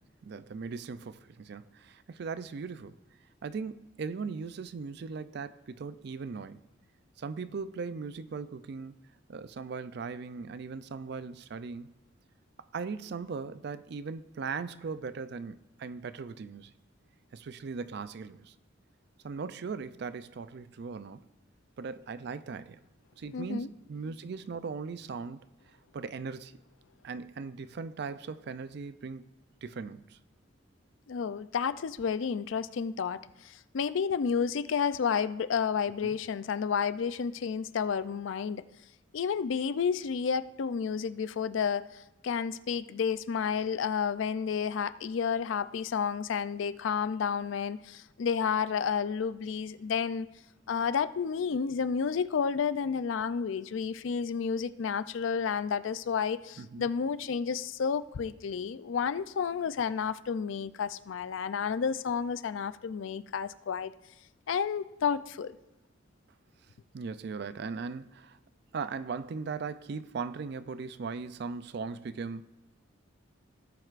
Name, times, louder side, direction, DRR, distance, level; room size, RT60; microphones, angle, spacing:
voice 1, 0.0-3.0 3.4-6.6 7.2-8.9 9.3-11.9 12.7-16.7 17.3-18.5 19.2-21.3 21.8-22.8 23.2-25.4 25.9-26.6 27.0-29.3 29.6-30.2 36.0-36.2 56.6-56.9 66.9-68.4 68.7-72.4, right 5 dB, 55° right, 0.4 m, -39 dB
voice 2, 23.3-23.7 31.1-38.6 39.1-50.3 50.7-63.9 64.5-65.6, left 6 dB, 70° left, 0.4 m, -31 dB
17.5 x 7.7 x 2.5 m
head